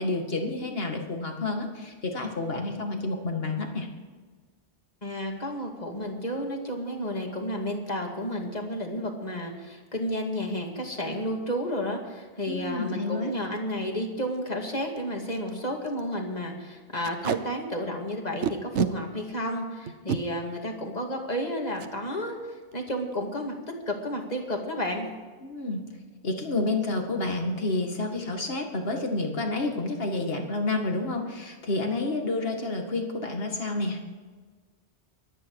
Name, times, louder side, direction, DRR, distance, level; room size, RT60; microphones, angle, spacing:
voice 1, 0.0-3.9 12.5-13.3 25.4-25.8 26.2-34.0, left 2 dB, 55° left, 3 dB, 2.2 m, -29 dB
voice 2, 5.0-23.5 23.9-25.1, equal, 35° left, 1 dB, 2.5 m, -32 dB
Packing tape duct tape, 13.4-13.6 14.0-14.1 14.3-14.5 15.0-15.1 15.3-15.5 15.8-16.0 17.0-17.4 18.4-18.9 19.9-20.2 21.8-21.9 22.3-22.5 22.7-23.1, right 7 dB, 85° right, 1.2 m, -28 dB
23.5 x 9.2 x 4.8 m, 1.5 s
omnidirectional pair, 1.2 m